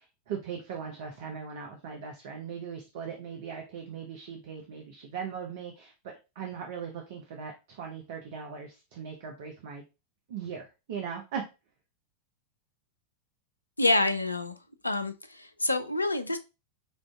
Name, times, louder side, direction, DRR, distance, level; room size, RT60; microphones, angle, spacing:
voice 1, 0.0-9.8 10.3-11.4, right 7 dB, 55° right, 2 dB, 0.7 m, -39 dB
voice 2, 13.8-14.6 14.8-16.4, left 2 dB, 85° left, 11 dB, 0.4 m, -27 dB
5.2 x 2.5 x 2.3 m, 0.28 s
figure-of-eight pair, 90°, 0 cm